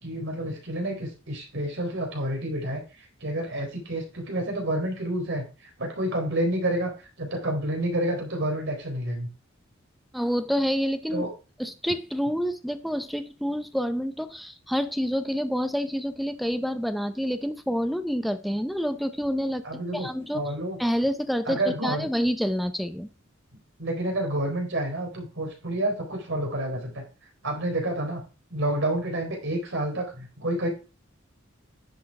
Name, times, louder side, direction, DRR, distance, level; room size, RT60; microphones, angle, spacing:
voice 1, 0.0-6.9 7.2-9.3 11.1-11.3 19.6-20.1 20.3-20.8 21.5-22.1 23.8-27.0 27.4-28.2 28.5-30.7, right 1 dB, 60° right, 2 dB, 4.1 m, -29 dB
voice 2, 10.1-11.2 11.6-20.4 20.8-23.1, equal, ahead, 10 dB, 0.6 m, -28 dB
10.5 x 6.3 x 4.8 m, 0.32 s
head